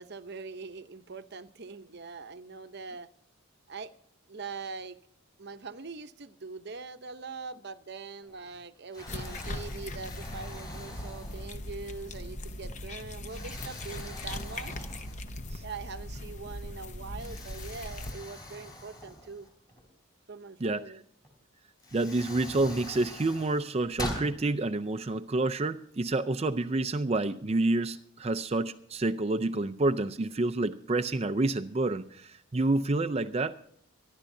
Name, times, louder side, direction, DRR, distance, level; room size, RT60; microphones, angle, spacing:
voice 1, 0.0-3.1 3.7-3.9 4.3-5.0 5.4-14.9 15.6-19.5 20.3-21.0, right 4 dB, 50° right, 10 dB, 0.8 m, -42 dB
Explosion, 8.2-8.6 8.9-11.8 12.4-12.5 13.2-15.5 15.8-15.9 17.2-19.8 21.2-21.3 21.8-24.3, left 1 dB, 20° left, 3.9 m, -43 dB
sound 1, 9.1-18.1, left 1 dB, 35° left, 0.7 m, -40 dB
voice 2, 20.6-21.0 21.9-33.5, right 2 dB, 30° right, 11 dB, 0.5 m, -28 dB
24.0 x 11.5 x 2.7 m, 0.69 s
head